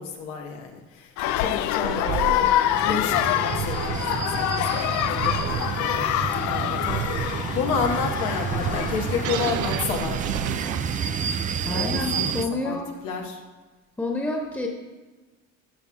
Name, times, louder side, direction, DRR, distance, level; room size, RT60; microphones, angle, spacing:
voice 1, 0.0-5.4 6.4-7.0 7.5-10.3 11.7-13.4, left 6 dB, 80° left, 2 dB, 1.3 m, -31 dB
sound 1, 1.2-9.5, left 12 dB, 65° left, 0.5 m, -26 dB
sound 2, 1.8-11.3, right 8 dB, 75° right, 0.6 m, -33 dB
Steel on Steel - Train passing, 2.7-12.5, right 7 dB, 25° right, 0.4 m, -30 dB
voice 2, 11.6-12.9 14.0-14.7, left 2 dB, 5° left, -1 dB, 1.3 m, -28 dB
13.5 x 5.9 x 2.4 m, 1.3 s
supercardioid pair, 80°, 31 cm